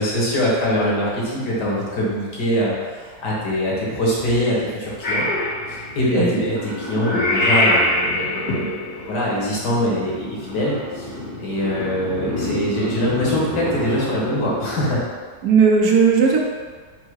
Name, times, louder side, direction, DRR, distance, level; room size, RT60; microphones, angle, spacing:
voice 1, 0.0-5.3 5.7-11.1 11.4-15.0, equal, 90° left, -6 dB, 1.8 m, -23 dB
Purr / Meow, 5.0-15.0, left 1 dB, 65° left, 2.1 m, -26 dB
voice 2, 15.4-16.4, right 5 dB, 70° right, 0 dB, 1.0 m, -16 dB
4.5 x 2.1 x 4.6 m, 1.5 s
omnidirectional pair, 1.7 m